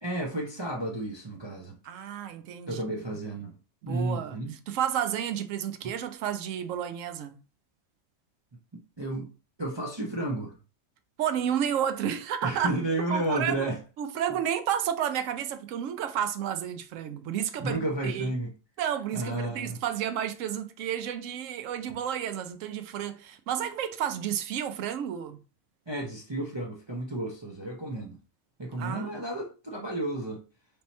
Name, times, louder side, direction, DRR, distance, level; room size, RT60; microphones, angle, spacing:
voice 1, 0.0-1.8 2.7-3.5 3.8-4.6 8.7-9.3 9.6-10.6 12.4-13.8 17.6-18.5 19.1-19.8 25.9-28.2 28.6-30.4, right 1 dB, 30° right, 0.5 m, -32 dB
voice 2, 1.8-2.8 3.8-4.4 4.7-7.4 11.2-12.7 13.1-13.7 14.0-18.3 18.8-25.4 28.8-29.2, right 9 dB, 70° right, 0.9 m, -31 dB
3.4 x 2.9 x 4.1 m
omnidirectional pair, 1.4 m